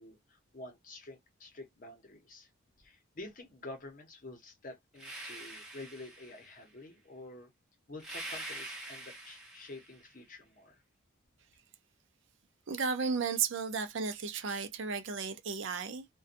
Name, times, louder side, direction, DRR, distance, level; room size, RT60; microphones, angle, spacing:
voice 1, 0.0-2.5 2.8-7.5 7.9-10.8, left 2 dB, 40° left, 0.7 m, -49 dB
sound 1, 4.9-6.6 8.0-10.1, right 1 dB, 5° right, 0.7 m, -45 dB
voice 2, 12.7-16.1, right 5 dB, 60° right, 0.5 m, -34 dB
2.6 x 2.2 x 2.5 m
head